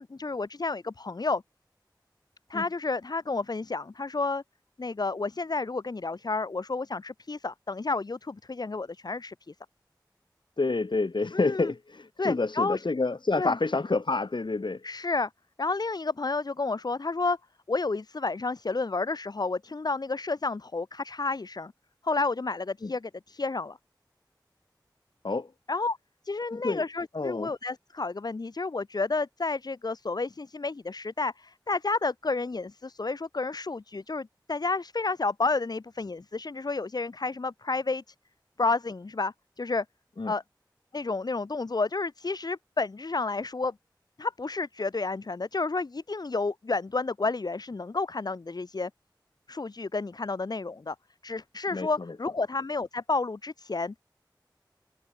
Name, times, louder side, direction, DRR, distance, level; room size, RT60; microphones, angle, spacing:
voice 1, 0.0-1.4 2.5-4.4 4.8-9.5 11.3-11.7 12.2-12.8 13.4-13.6 14.8-15.3 15.6-17.4 17.7-21.7 22.0-23.8 25.7-26.0 26.2-38.1 38.6-39.8 40.3-40.4 40.9-43.7 44.2-48.9 49.5-51.0 51.2-54.0, left 3 dB, 60° left, 0.6 m, -31 dB
voice 2, 10.6-14.8 22.8-22.9 25.2-25.5 26.5-26.8 27.1-27.5 40.2-40.3 51.7-52.2, left 3 dB, 80° left, 2.2 m, -28 dB
wide cardioid pair, 45°, 8 cm